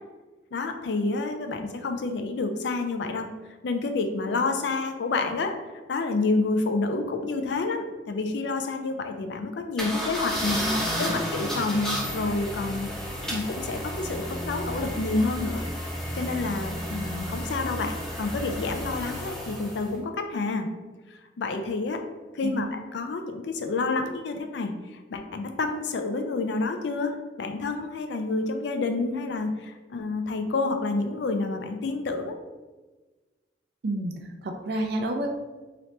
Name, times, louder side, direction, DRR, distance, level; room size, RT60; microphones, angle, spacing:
voice 1, 0.5-3.3 3.6-5.5 5.9-10.6 11.0-12.9 13.3-15.6 16.1-20.7 21.4-22.0 22.3-24.7 25.1-32.3, left 3 dB, 70° left, 6 dB, 0.4 m, -29 dB
sound 1, 9.8-19.9, equal, 5° left, 0.6 m, -32 dB
voice 2, 10.6-11.2 22.4-22.7 33.8-34.1 34.4-35.3, right 1 dB, 60° right, 3 dB, 0.5 m, -29 dB
2.9 x 2.8 x 3.1 m, 1.2 s
head